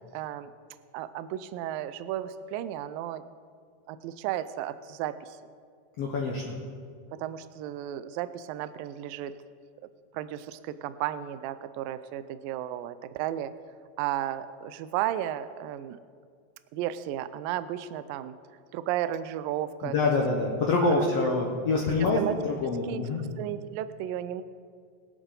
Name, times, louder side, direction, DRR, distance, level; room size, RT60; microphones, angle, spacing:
voice 1, 0.1-0.5 0.9-3.2 3.9-5.4 7.1-9.3 9.8-9.9 10.1-13.5 14.0-16.0 16.7-18.3 18.7-19.9 20.8-21.1 22.2-22.4 22.9-24.4, right 12 dB, 90° right, 13 dB, 2.0 m, -34 dB
voice 2, 6.0-6.6 19.8-23.2, left 3 dB, 75° left, -1 dB, 1.4 m, -26 dB
23.0 x 8.1 x 3.9 m, 2.1 s
omnidirectional pair, 4.6 m